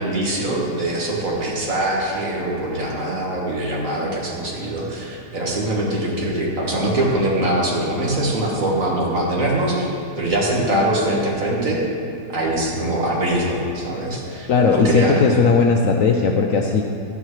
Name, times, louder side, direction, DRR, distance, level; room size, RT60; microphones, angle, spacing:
voice 1, 0.0-9.9 10.2-11.8 12.3-15.2, right 1 dB, 50° right, -3 dB, 1.8 m, -23 dB
voice 2, 14.5-16.8, left 4 dB, 70° left, 2 dB, 0.8 m, -17 dB
12.0 x 9.5 x 3.1 m, 2.6 s
omnidirectional pair, 1.8 m